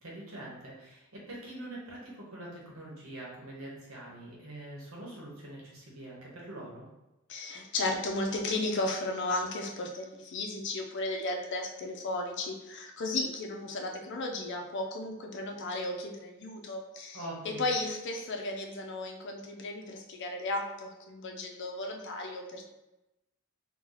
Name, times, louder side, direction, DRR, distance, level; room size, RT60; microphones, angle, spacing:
voice 1, 0.0-6.9 17.1-17.7, right 1 dB, 70° right, -4 dB, 1.1 m, -44 dB
voice 2, 7.3-17.2 17.4-22.6, left 2 dB, 55° left, 2 dB, 0.5 m, -34 dB
2.9 x 2.3 x 3.8 m, 0.97 s
head